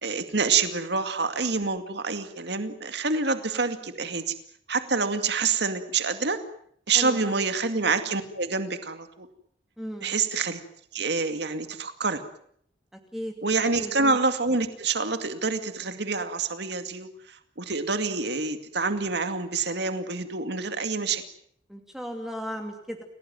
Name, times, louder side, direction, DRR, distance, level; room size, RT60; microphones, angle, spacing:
voice 1, 0.0-4.4 4.7-6.4 6.9-9.3 10.0-10.6 10.9-12.2 13.4-21.2, right 4 dB, 65° right, 8 dB, 2.3 m, -27 dB
voice 2, 6.9-7.4 9.8-10.1 13.1-13.3 13.8-13.9 21.7-23.0, equal, ahead, 2 dB, 2.7 m, -35 dB
29.0 x 18.0 x 9.2 m, 0.68 s
head